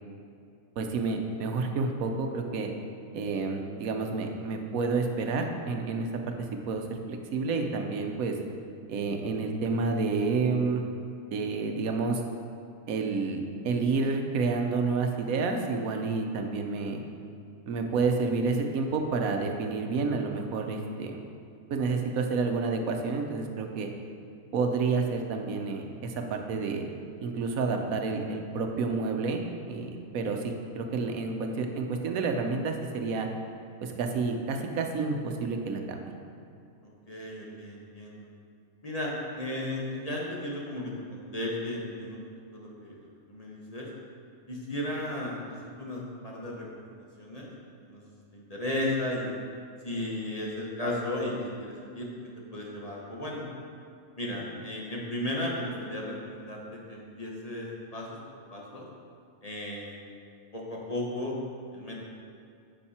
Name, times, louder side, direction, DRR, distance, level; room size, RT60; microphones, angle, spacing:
voice 1, 0.8-2.7 3.1-6.3 6.7-8.3 8.9-10.8 11.3-12.2 12.9-17.0 17.7-21.2 21.7-23.9 24.5-26.8 27.2-29.4 29.7-33.3 33.8-36.0, right 4 dB, 85° right, 4 dB, 1.2 m, -29 dB
voice 2, 37.1-38.2 38.8-42.2 42.5-43.9 44.5-45.4 45.8-46.6 47.2-47.5 47.8-48.0 48.3-49.3 49.8-52.1 52.5-53.5 54.2-58.2 58.5-58.9 59.4-60.0 60.5-61.3 61.7-62.0, left 1 dB, 30° left, -4 dB, 1.2 m, -35 dB
10.0 x 5.7 x 4.3 m, 2.4 s
omnidirectional pair, 1.4 m